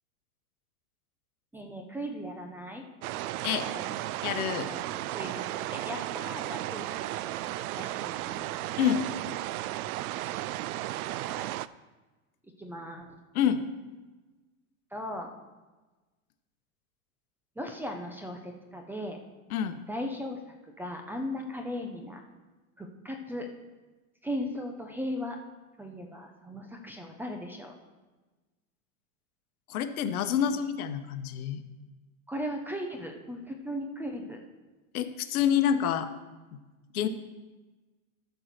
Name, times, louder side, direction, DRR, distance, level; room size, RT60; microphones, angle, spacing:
voice 1, 1.5-2.8 3.6-3.8 4.7-4.8 5.1-5.4 5.7-6.9 7.2-7.3 7.8-8.4 10.2-10.4 11.2-11.4 12.6-13.1 14.9-15.3 17.6-19.2 19.9-20.4 20.8-22.2 22.8-23.5 24.2-25.4 25.8-27.7 32.3-34.4, equal, 5° right, 3 dB, 0.6 m, -37 dB
sound 1, 3.0-11.7, right 15 dB, 80° right, 0.5 m, -34 dB
voice 2, 4.2-4.7 8.8-9.0 13.3-13.6 19.5-19.8 29.7-31.6 34.9-36.1 36.9-37.1, left 9 dB, 80° left, 9 dB, 1.1 m, -27 dB
13.0 x 4.6 x 6.7 m, 1.2 s
supercardioid pair, 145°, 43 cm